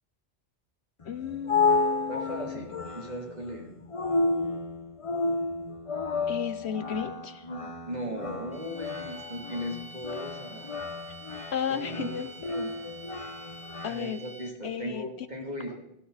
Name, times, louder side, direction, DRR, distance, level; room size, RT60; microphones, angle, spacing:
voice 1, 1.0-2.6 6.3-7.4 11.5-12.3 13.8-14.2 14.6-15.1, left 8 dB, 65° left, 12 dB, 1.2 m, -33 dB
sound 1, 1.0-13.9, left 3 dB, 30° left, 0.9 m, -31 dB
voice 2, 2.1-3.7 7.9-10.8 11.7-12.2 12.5-12.7 13.8-15.8, equal, 35° right, 1 dB, 3.3 m, -37 dB
sound 2, 8.5-14.7, right 3 dB, 5° left, 1.2 m, -47 dB
18.0 x 15.0 x 4.1 m, 0.80 s
omnidirectional pair, 1.2 m